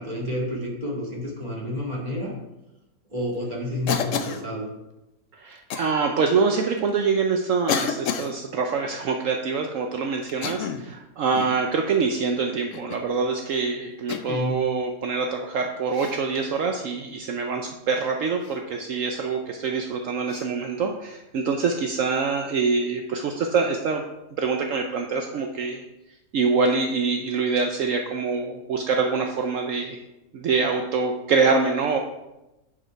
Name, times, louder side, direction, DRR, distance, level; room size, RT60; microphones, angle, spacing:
voice 1, 0.0-2.3 3.1-4.7 14.3-14.6, left 1 dB, 30° right, -3 dB, 2.0 m, -30 dB
Cough, 3.9-4.4 5.7-5.9 6.8-6.9 7.7-8.3 10.3-10.9 11.3-11.6 12.7-13.1 14.1-14.5 15.9-16.2 18.4-18.6 20.3-20.5, left 6 dB, 65° left, 1.0 m, -29 dB
voice 2, 5.3-24.0 24.4-25.9 26.3-30.0 30.3-32.0, right 4 dB, 65° right, 3 dB, 1.0 m, -25 dB
9.7 x 5.1 x 4.5 m, 0.98 s
omnidirectional pair, 1.5 m